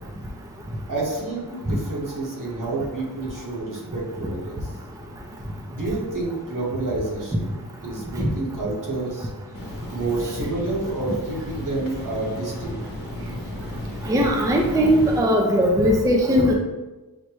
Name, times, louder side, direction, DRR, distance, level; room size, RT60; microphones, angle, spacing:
voice 1, 0.9-4.6 5.7-7.5 7.8-9.3 9.9-12.8, right 2 dB, 60° right, -3 dB, 1.2 m, -29 dB
sound 1, 9.5-15.2, left 1 dB, 65° left, 0.9 m, -35 dB
voice 2, 14.1-16.6, equal, 10° right, 0 dB, 0.4 m, -19 dB
6.4 x 2.1 x 3.0 m, 1.1 s
wide cardioid pair, 115°, 37 cm